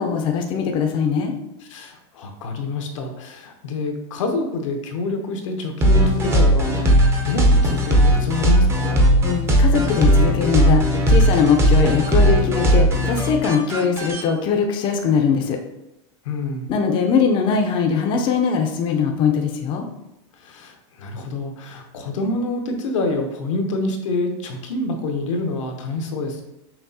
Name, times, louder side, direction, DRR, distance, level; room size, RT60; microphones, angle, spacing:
voice 1, 0.0-1.3 9.2-15.6 16.7-19.8, left 6 dB, 30° left, 3 dB, 0.5 m, -21 dB
voice 2, 1.7-9.0 16.2-16.7 20.4-26.4, left 2 dB, 85° left, 4 dB, 0.8 m, -27 dB
sound 1, 5.8-14.2, equal, 15° right, 0.6 m, -17 dB
5.8 x 2.3 x 2.7 m, 0.90 s
supercardioid pair, 140°, 16 cm